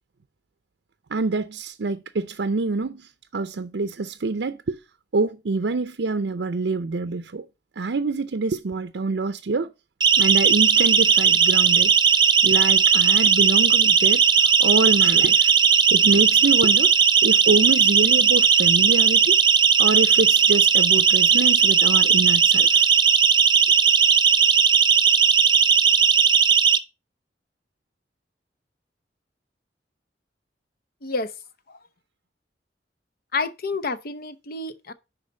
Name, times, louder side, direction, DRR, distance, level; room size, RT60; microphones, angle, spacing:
voice 1, 1.1-4.8 5.1-7.4 7.8-9.7 10.2-11.9 12.4-14.2 14.6-15.5 15.9-16.9 17.2-19.4 19.8-22.9, right 3 dB, 70° right, 0.6 m, -25 dB
Siren, 10.0-26.8, right 6 dB, 25° right, 0.6 m, -17 dB
voice 2, 33.3-34.9, left 3 dB, 55° left, 0.8 m, -29 dB
10.5 x 4.1 x 5.3 m
head